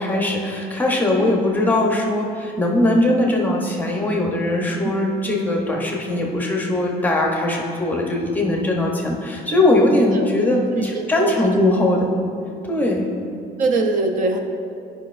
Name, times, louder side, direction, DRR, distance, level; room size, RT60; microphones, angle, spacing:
voice 1, 0.0-12.1 12.6-13.1, left 1 dB, 10° left, -1 dB, 0.7 m, -20 dB
voice 2, 10.7-11.3 13.6-14.4, right 3 dB, 50° right, 4 dB, 0.6 m, -22 dB
11.5 x 5.2 x 2.5 m, 2.4 s
cardioid pair, 165°, 17 cm